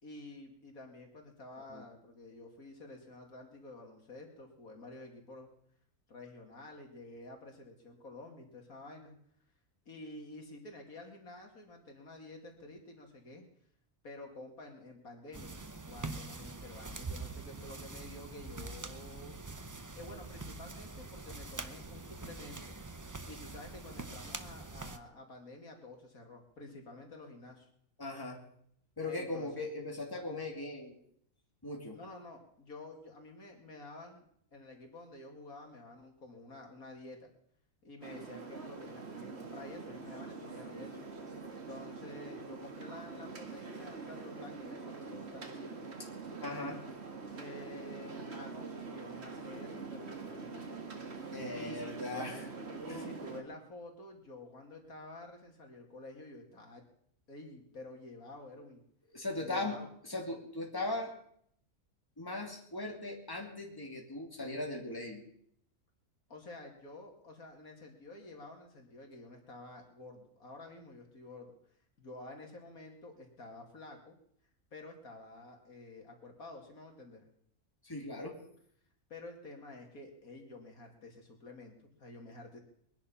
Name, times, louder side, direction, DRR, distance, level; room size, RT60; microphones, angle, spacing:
voice 1, 0.0-5.5 6.1-9.1 9.9-13.4 14.0-19.4 20.0-22.8 23.3-27.7 29.0-29.6 31.9-34.2 34.5-37.3 37.8-41.0 41.7-45.8 47.3-50.8 51.5-52.3 52.8-56.8 57.3-58.8 59.4-59.9 66.3-71.5 72.0-74.1 74.7-77.3 79.1-82.6, left 2 dB, 75° left, 2 dB, 2.9 m, -50 dB
sound 1, 15.3-25.0, right 3 dB, 25° right, 0.4 m, -44 dB
voice 2, 28.0-28.4 29.0-31.0 31.6-32.0 46.4-46.8 51.3-52.4 59.1-59.8 60.1-61.1 62.2-65.2 77.8-78.4, left 2 dB, 15° left, 0 dB, 2.7 m, -38 dB
sound 2, 38.0-53.4, right 4 dB, 45° right, 1.8 m, -44 dB
21.5 x 10.5 x 5.7 m, 0.67 s
omnidirectional pair, 1.5 m